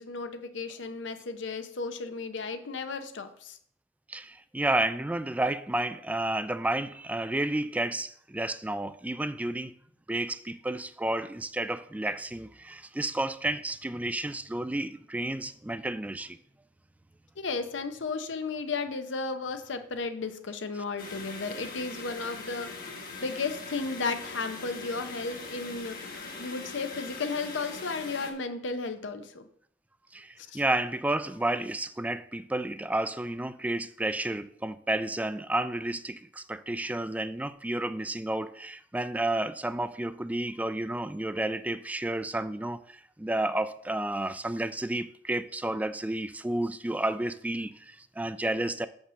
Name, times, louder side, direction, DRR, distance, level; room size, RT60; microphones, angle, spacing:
voice 1, 0.0-3.6 17.4-22.9 23.2-29.5 30.4-30.6, left 4 dB, 85° left, 0.7 m, -34 dB
voice 2, 4.1-9.7 10.1-16.4 30.1-48.9, right 1 dB, 10° right, 0.3 m, -31 dB
sound 1, 21.0-28.3, left 3 dB, 50° left, 1.3 m, -41 dB
6.4 x 5.3 x 6.1 m
head